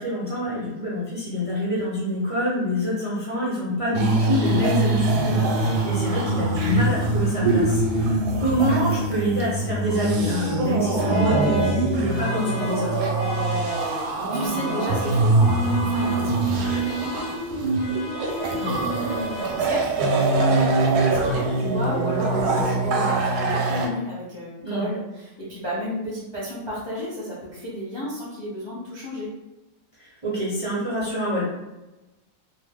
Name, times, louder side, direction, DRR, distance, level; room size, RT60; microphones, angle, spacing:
voice 1, 0.0-13.0 18.6-18.9 24.6-24.8 30.2-31.4, equal, 40° right, -8 dB, 0.5 m, -26 dB
sound 1, 3.9-23.9, right 2 dB, 85° right, 1.1 m, -23 dB
sound 2, 11.1-20.1, left 3 dB, 75° left, 1.1 m, -38 dB
voice 2, 14.1-16.3 19.6-29.3, equal, 35° left, -7 dB, 0.4 m, -32 dB
2.7 x 2.0 x 3.4 m, 1.0 s
omnidirectional pair, 1.6 m